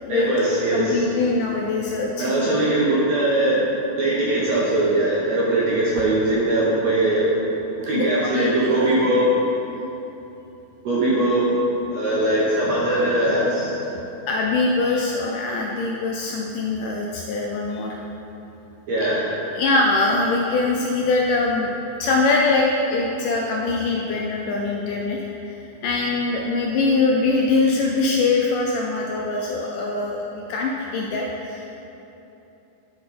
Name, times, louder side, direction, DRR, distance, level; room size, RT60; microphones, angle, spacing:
voice 1, 0.1-1.0 2.2-3.7 4.0-7.3 7.9-9.3 10.8-11.5 11.9-13.8 18.9-19.3, right 1 dB, 70° right, -7 dB, 1.7 m, -21 dB
voice 2, 0.7-2.5 7.9-8.9 14.3-18.0 19.5-21.7 22.0-30.2 30.5-31.7, left 3 dB, 80° left, -1 dB, 1.9 m, -23 dB
11.0 x 5.1 x 4.2 m, 3.0 s
omnidirectional pair, 4.2 m